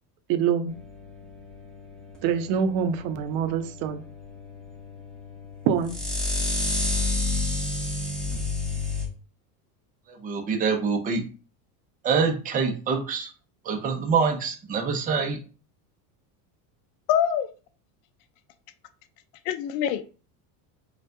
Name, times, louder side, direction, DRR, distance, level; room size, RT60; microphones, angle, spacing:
voice 1, 0.3-0.7 2.2-4.0 5.7-5.9, right 7 dB, 60° right, 0.8 m, -25 dB
sound 1, 0.7-9.1, left 2 dB, ahead, 1.0 m, -31 dB
voice 2, 10.2-11.2 12.0-13.3 13.6-15.4, right 5 dB, 20° right, 0.6 m, -25 dB
voice 3, 17.1-17.5 19.5-20.0, left 9 dB, 70° left, 0.6 m, -24 dB
5.5 x 2.4 x 2.7 m
supercardioid pair, 145°, 46 cm